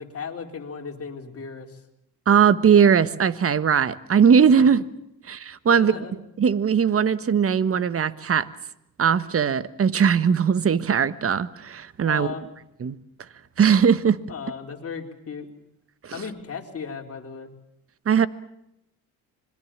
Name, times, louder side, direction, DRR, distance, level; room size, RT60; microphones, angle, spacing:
voice 1, 0.0-1.8 5.8-6.1 12.0-12.4 14.3-15.5 16.1-17.5, left 5 dB, 40° left, 3 dB, 4.1 m, -35 dB
voice 2, 2.3-4.8 5.3-5.9 6.4-8.5 9.0-12.3 12.8-12.9 13.6-14.2 16.0-16.2 18.0-18.3, right 7 dB, 40° right, 16 dB, 1.3 m, -19 dB
26.5 x 22.0 x 7.5 m, 0.80 s
cardioid pair, 90°, 37 cm